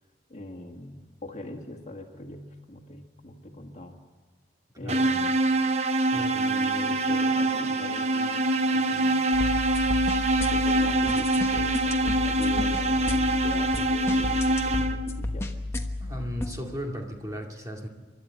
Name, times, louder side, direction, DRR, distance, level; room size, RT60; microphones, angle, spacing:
voice 1, 0.3-4.0 4.8-5.4 6.1-9.3 10.5-15.5, left 1 dB, 40° left, 3 dB, 1.9 m, -41 dB
sound 1, 4.9-15.2, right 1 dB, 35° right, 0.8 m, -25 dB
voice 2, 6.0-6.5 16.0-17.9, equal, 20° right, 1 dB, 2.3 m, -36 dB
sound 2, 9.3-16.6, left 1 dB, 15° left, 1.3 m, -32 dB
30.0 x 12.0 x 9.5 m, 1.5 s
head